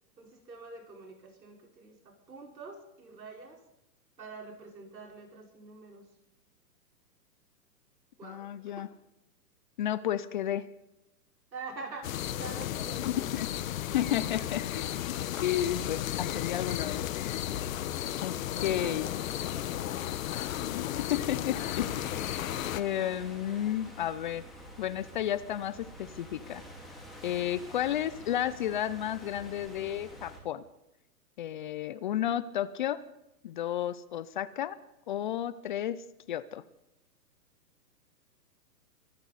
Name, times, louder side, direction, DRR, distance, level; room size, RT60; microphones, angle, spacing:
voice 1, 0.2-3.6 4.2-6.1 8.2-8.9 11.5-13.3 18.0-20.0, right 3 dB, 90° right, 1 dB, 5.0 m, -46 dB
voice 2, 8.2-8.9 9.8-10.6 13.1-13.5 13.9-15.2 15.4-17.0 18.2-18.4 18.6-19.1 20.6-20.8 21.1-21.9 22.8-24.4 24.8-26.6 27.2-30.6 31.4-33.0 33.4-34.8 35.1-36.0 36.3-36.6, left 11 dB, 30° left, 17 dB, 0.5 m, -32 dB
sound 1, 12.0-22.8, left 12 dB, 55° left, 1.2 m, -34 dB
sound 2, 21.4-30.4, equal, ahead, 3.9 m, -48 dB
24.0 x 14.0 x 4.1 m, 0.90 s
hypercardioid pair, 135°, 49 cm